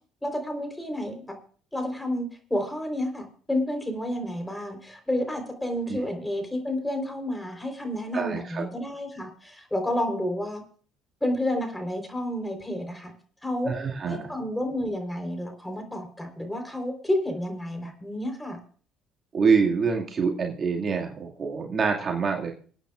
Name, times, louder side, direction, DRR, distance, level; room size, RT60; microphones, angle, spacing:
voice 1, 0.2-1.2 1.7-10.6 11.2-13.1 13.4-13.7 14.1-18.6, left 1 dB, 10° left, 5 dB, 4.0 m, -30 dB
voice 2, 8.1-8.6 13.6-14.3 19.3-22.5, right 5 dB, 45° right, 1 dB, 2.2 m, -26 dB
26.0 x 9.2 x 2.5 m, 0.43 s
supercardioid pair, 75°, 0 cm